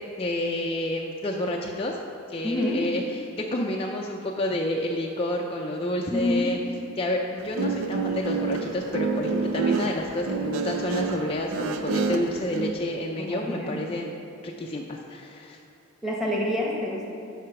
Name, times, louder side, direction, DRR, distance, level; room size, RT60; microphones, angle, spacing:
voice 1, 0.2-2.0 2.3-6.6 7.0-14.1 14.4-15.6, left 1 dB, 25° left, -1 dB, 0.4 m, -29 dB
voice 2, 2.4-2.8 6.1-6.5 13.2-13.8 16.0-17.1, left 1 dB, ahead, -2 dB, 1.1 m, -27 dB
Guitar, 7.4-12.7, right 4 dB, 90° right, 0.5 m, -28 dB
7.8 x 5.0 x 5.8 m, 2.9 s
head